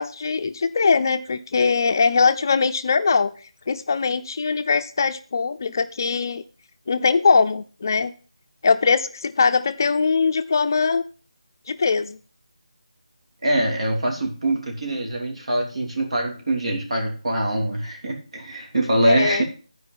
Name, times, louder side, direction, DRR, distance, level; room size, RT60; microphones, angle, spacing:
voice 1, 0.0-3.3 3.7-6.4 6.9-8.1 8.6-11.0 11.7-12.2 19.1-19.4, left 4 dB, 35° left, 9 dB, 0.5 m, -21 dB
voice 2, 13.4-19.4, right 1 dB, 65° right, 2 dB, 3.1 m, -23 dB
12.5 x 4.8 x 5.4 m, 0.38 s
figure-of-eight pair, 165°, 3 cm